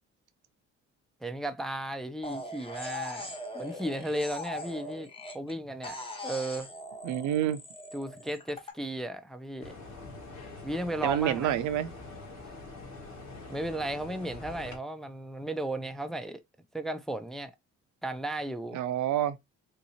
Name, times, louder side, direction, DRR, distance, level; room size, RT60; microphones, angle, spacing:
voice 1, 1.2-5.1 5.3-6.0 6.2-6.7 7.9-9.7 10.6-11.6 13.5-16.4 16.7-17.5 18.0-18.8, right 1 dB, ahead, 0.4 m, -35 dB
sound 1, 2.2-5.5 5.8-8.7, left 1 dB, 15° left, 1.2 m, -40 dB
voice 2, 7.0-7.6 11.0-11.9 18.7-19.4, right 11 dB, 75° right, 0.5 m, -28 dB
sound 2, 9.6-14.8, left 3 dB, 65° left, 1.4 m, -45 dB
3.6 x 2.8 x 2.7 m
cardioid pair, 90°, 30 cm